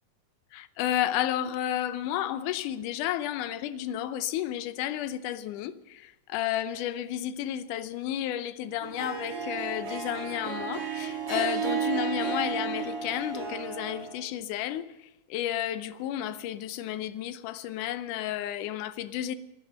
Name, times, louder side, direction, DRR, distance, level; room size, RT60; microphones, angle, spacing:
voice 1, 0.5-19.4, left 12 dB, 80° left, 2.3 m, -32 dB
Harp, 8.8-14.1, right 5 dB, 65° right, 4.2 m, -33 dB
18.5 x 11.5 x 6.6 m
omnidirectional pair, 3.7 m